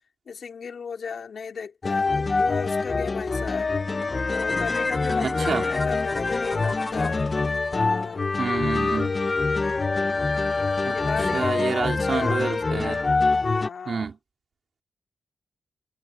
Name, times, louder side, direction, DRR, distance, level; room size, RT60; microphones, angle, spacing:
voice 1, 0.3-3.7 4.3-7.2 7.7-8.2 9.9-10.3 10.9-12.5 13.5-14.1, left 6 dB, 70° left, 4.6 m, -35 dB
sound 1, 1.8-13.7, left 3 dB, 35° left, 1.0 m, -25 dB
sound 2, 4.3-8.4, left 1 dB, 15° left, 5.4 m, -38 dB
voice 2, 5.2-5.7 8.4-9.2 10.8-11.0 11.3-13.0 13.9-14.2, right 5 dB, 55° right, 4.5 m, -28 dB
wide cardioid pair, 145°, 0 cm